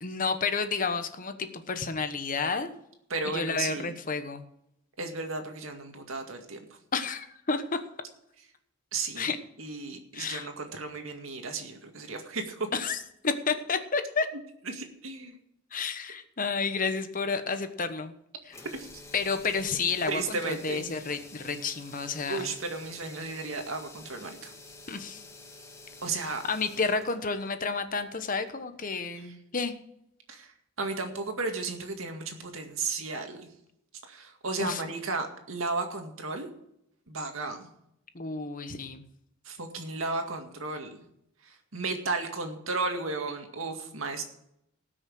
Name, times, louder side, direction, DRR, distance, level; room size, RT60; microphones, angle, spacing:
voice 1, 0.0-2.7 3.2-4.4 6.9-7.8 9.2-9.4 10.1-10.5 12.7-13.0 13.2-14.3 15.7-18.1 18.5-18.6 19.1-22.5 24.9-25.2 26.2-29.7 34.6-34.8 38.1-39.0, left 4 dB, 40° left, 9 dB, 1.1 m, -31 dB
voice 2, 3.1-3.9 5.0-6.6 8.9-9.3 9.6-12.7 14.7-15.4 18.7-18.9 20.1-20.9 22.3-24.5 26.0-26.4 30.3-30.5 30.8-33.5 34.1-36.5 37.1-37.7 39.5-41.0 41.4-44.2, right 3 dB, 80° right, 4 dB, 2.1 m, -34 dB
sound 1, 18.5-28.6, left 2 dB, 15° left, 1.5 m, -49 dB
18.0 x 6.4 x 6.2 m, 0.78 s
head